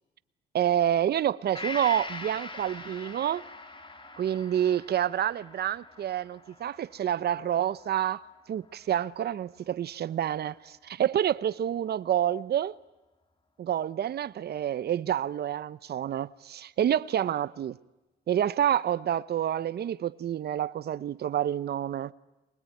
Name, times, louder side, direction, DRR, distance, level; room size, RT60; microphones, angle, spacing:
voice 1, 0.5-3.5 4.2-8.2 8.5-12.8 13.6-17.8 18.3-22.1, right 10 dB, 55° right, 0.7 m, -28 dB
Gong, 1.5-9.2 9.6-9.7, left 3 dB, 25° left, 2.2 m, -43 dB
23.5 x 20.5 x 9.2 m
cardioid pair, 90°, 20 cm